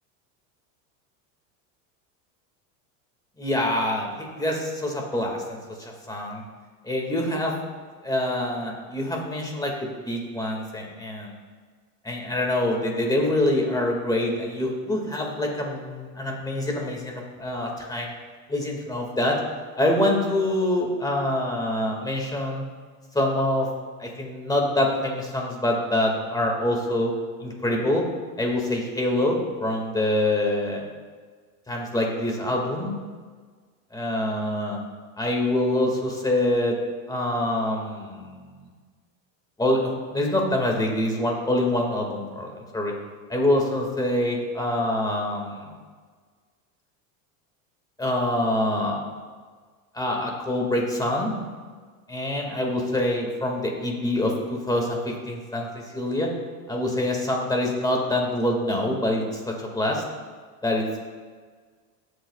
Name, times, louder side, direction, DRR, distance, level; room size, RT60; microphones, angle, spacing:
voice 1, 3.4-6.4 6.8-7.5 8.0-11.3 12.0-18.1 18.5-19.4 19.8-22.6 23.1-23.7 24.0-27.1 27.4-28.0 28.4-30.9 31.7-33.0 33.9-34.8 35.2-36.8 37.1-38.7 39.6-42.9 43.3-45.7 48.0-49.0 49.9-51.4 52.1-56.3 56.7-60.0 60.6-61.1, left 1 dB, 10° left, 0 dB, 2.0 m, -25 dB
16.5 x 8.3 x 2.4 m, 1.5 s
supercardioid pair, 120°, 39 cm